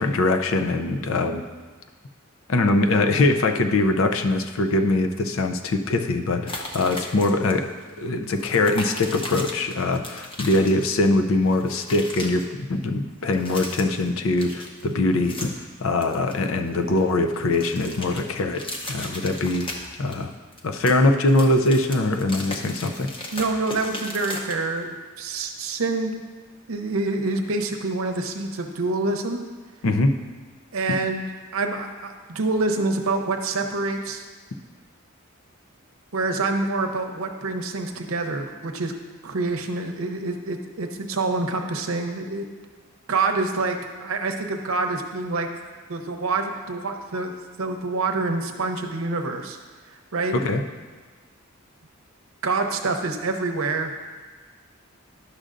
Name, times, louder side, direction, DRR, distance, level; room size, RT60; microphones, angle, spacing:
voice 1, 0.0-1.4 2.5-7.7 8.0-15.5 15.8-19.7 20.0-20.3 20.6-23.1 29.8-30.1 50.3-50.6, left 2 dB, 75° left, 7 dB, 0.5 m, -22 dB
sound 1, 6.5-7.5 7.8-7.9 8.4-11.2 11.4-12.5 13.2-14.1 14.4-15.7 16.0-17.0 17.3-20.2 20.5-24.8, left 1 dB, 25° left, 0.8 m, -36 dB
voice 2, 23.3-26.1 26.7-29.4 30.7-31.2 31.5-34.2 36.1-38.9 39.2-42.4 43.1-45.5 45.9-47.3 47.6-49.6 50.1-50.4 52.4-54.0, right 3 dB, 85° right, 5 dB, 0.7 m, -26 dB
11.0 x 6.5 x 2.5 m, 1.4 s
head